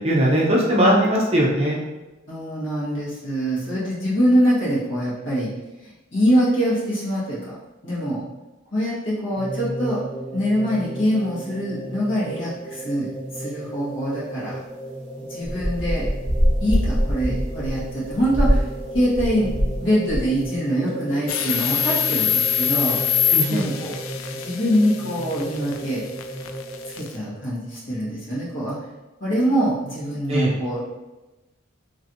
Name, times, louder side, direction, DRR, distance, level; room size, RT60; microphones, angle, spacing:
voice 1, 0.0-1.8 23.3-23.6 30.3-30.5, equal, 30° right, -3 dB, 0.6 m, -19 dB
voice 2, 2.3-5.5 5.8-7.5 7.8-8.2 8.7-10.0 10.3-14.6 15.3-16.1 16.6-18.6 18.9-23.0 23.5-24.0 24.3-26.0 26.9-28.8 29.2-30.8, equal, 65° left, -8 dB, 1.5 m, -24 dB
sound 1, 9.3-26.9, right 1 dB, 5° right, 1.2 m, -35 dB
sound 2, 15.5-19.8 20.1-20.4, equal, 10° left, 0.6 m, -23 dB
sound 3, 21.3-27.2, left 8 dB, 85° left, 0.3 m, -24 dB
3.1 x 2.9 x 2.6 m, 1.1 s
head